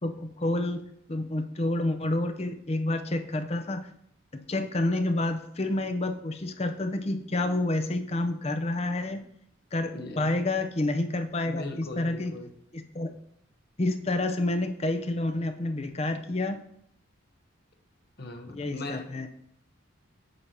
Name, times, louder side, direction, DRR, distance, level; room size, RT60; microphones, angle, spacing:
voice 1, 0.0-3.9 4.3-9.2 9.7-12.4 12.7-13.1 13.8-16.6 18.5-19.3, left 2 dB, 30° left, 7 dB, 0.5 m, -29 dB
voice 2, 9.9-10.4 11.5-12.5 18.2-19.3, left 2 dB, 50° left, 4 dB, 0.9 m, -39 dB
8.0 x 2.8 x 5.8 m, 0.70 s
head